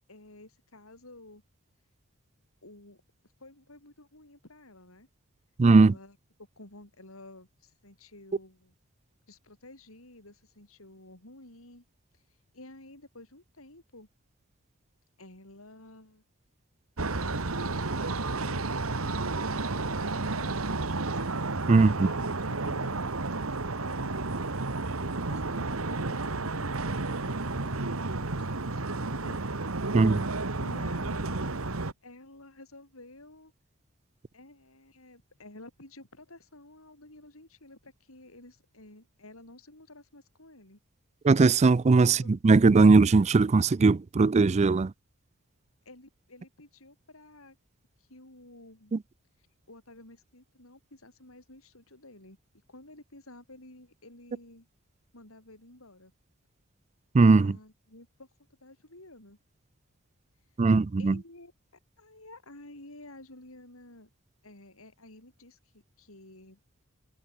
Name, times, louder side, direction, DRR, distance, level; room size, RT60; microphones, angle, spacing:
voice 1, 0.0-1.4 2.6-3.0 3.4-5.1 5.8-6.2 6.6-8.7 9.3-11.8 12.5-14.1 15.2-16.2 17.2-21.3 22.1-23.0 23.4-24.3 25.3-29.4 30.6-31.6 32.0-33.5 34.3-40.8 42.1-42.4 45.8-47.6 48.0-48.9 49.7-52.4 52.7-54.7 55.1-56.1 57.4-58.3 58.6-59.4 61.0-61.5 62.0-64.1 64.4-66.6, left 2 dB, 85° left, 6.6 m, -51 dB
voice 2, 5.6-5.9 21.7-22.1 29.9-30.2 41.2-44.9 48.9-49.0 57.1-57.5 60.6-61.2, right 3 dB, 30° right, 0.4 m, -20 dB
sound 1, 17.0-31.9, right 3 dB, 80° right, 1.7 m, -31 dB
head